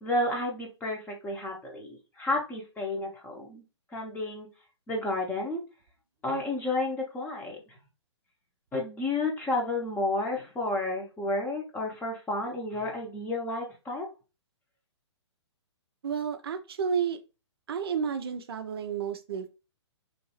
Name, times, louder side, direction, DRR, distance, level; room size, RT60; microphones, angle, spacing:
voice 1, 0.0-3.6 3.9-4.5 4.9-5.6 6.2-7.6 8.7-14.1, left 2 dB, 10° left, 0.8 m, -31 dB
voice 2, 16.0-17.2 17.7-19.5, right 7 dB, 55° right, 0.4 m, -31 dB
3.1 x 2.6 x 2.9 m
figure-of-eight pair, 125°, 15 cm